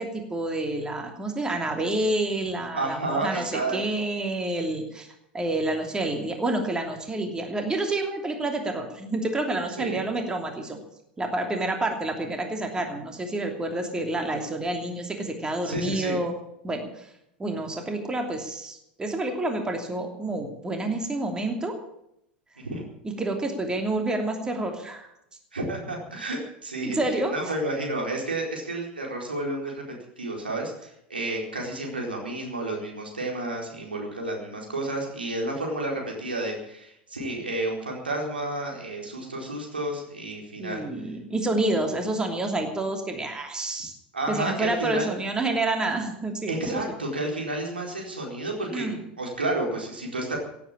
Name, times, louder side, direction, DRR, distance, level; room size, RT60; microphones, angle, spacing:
voice 1, 0.0-5.1 5.3-10.8 11.2-16.3 16.6-17.1 17.4-21.8 23.2-25.1 26.8-27.4 40.6-43.9 44.3-46.8 48.7-49.0, right 2 dB, 15° right, 4 dB, 2.9 m, -28 dB
voice 2, 2.7-3.8 9.8-10.0 15.6-16.2 22.6-22.8 25.5-29.8 30.2-40.8 44.1-45.1 46.5-48.9 49.2-50.4, right 2 dB, 85° right, 0 dB, 4.3 m, -31 dB
17.0 x 8.7 x 8.7 m, 0.78 s
figure-of-eight pair, 80°, 5 cm